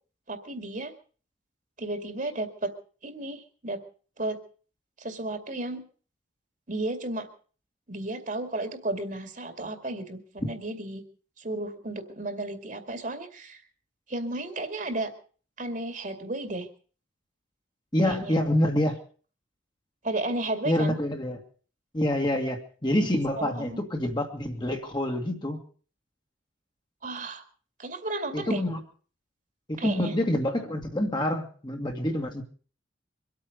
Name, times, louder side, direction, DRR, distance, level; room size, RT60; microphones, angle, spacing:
voice 1, 0.3-0.9 1.8-2.7 3.0-3.8 4.2-4.4 5.0-5.8 6.7-7.3 7.9-11.0 11.4-13.6 14.1-15.1 15.6-16.7 18.0-18.4 20.0-21.0 23.4-23.8 27.0-27.4 27.8-28.6 29.8-30.1, right 2 dB, 40° right, 7 dB, 2.2 m, -33 dB
voice 2, 17.9-19.0 20.7-21.4 21.9-25.6 28.3-28.8 29.7-32.4, left 1 dB, 25° left, 3 dB, 1.9 m, -27 dB
24.0 x 8.7 x 6.6 m, 0.43 s
head